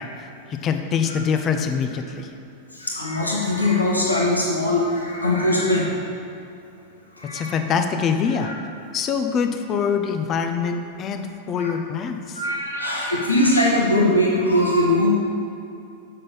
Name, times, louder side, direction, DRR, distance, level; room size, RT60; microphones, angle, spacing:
voice 1, 0.0-2.3 7.3-8.5 8.9-12.4, left 6 dB, 30° left, 6 dB, 0.7 m, -24 dB
voice 2, 2.7-5.9 7.2-7.5 8.4-8.5 11.6-11.7 12.3-15.1, left 1 dB, 85° left, -4 dB, 1.6 m, -21 dB
7.7 x 6.7 x 5.6 m, 2.7 s
figure-of-eight pair, 90°, 0 cm